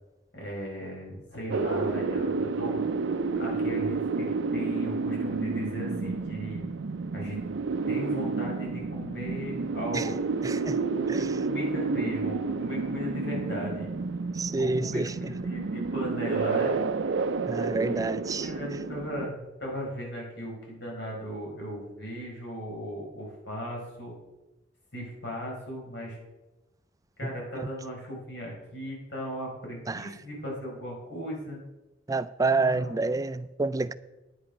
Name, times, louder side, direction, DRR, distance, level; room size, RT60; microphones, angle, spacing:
voice 1, 0.3-2.8 3.3-6.7 7.1-7.4 7.9-10.2 11.0-13.9 14.6-16.8 17.6-24.1 24.9-26.2 27.2-31.6 32.6-32.9, equal, 65° left, 4.7 m, -37 dB
sound 1, 1.5-19.3, right 4 dB, 80° right, 0.5 m, -30 dB
voice 2, 10.4-10.8 11.1-11.3 14.3-15.4 17.5-18.5 27.2-27.7 29.9-30.1 32.1-33.9, right 3 dB, 20° right, 0.4 m, -29 dB
9.8 x 8.5 x 5.9 m
head